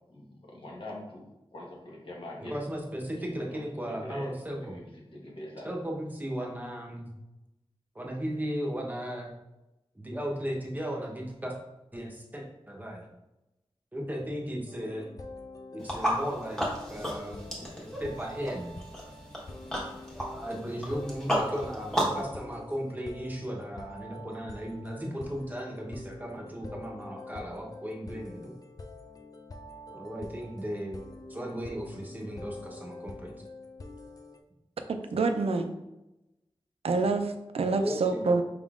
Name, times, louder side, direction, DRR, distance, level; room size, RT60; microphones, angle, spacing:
voice 1, 0.1-2.5 3.1-3.6 3.9-5.7, left 1 dB, 60° left, -2 dB, 1.1 m, -43 dB
voice 2, 2.5-4.7 5.6-7.1 7.9-9.3 10.0-11.5 11.9-13.1 13.9-15.1 15.7-17.5 17.8-18.7 20.1-28.5 29.9-31.0 31.3-33.3 37.8-38.4, equal, 15° right, -1 dB, 0.8 m, -36 dB
sound 1, 14.7-34.4, left 2 dB, 40° left, 0.4 m, -46 dB
sound 2, 15.8-22.3, equal, 5° left, 1.2 m, -33 dB
voice 3, 34.9-35.7 36.8-38.4, right 3 dB, 85° right, 7 dB, 0.4 m, -27 dB
5.0 x 3.6 x 2.4 m, 0.95 s
wide cardioid pair, 90°, 10 cm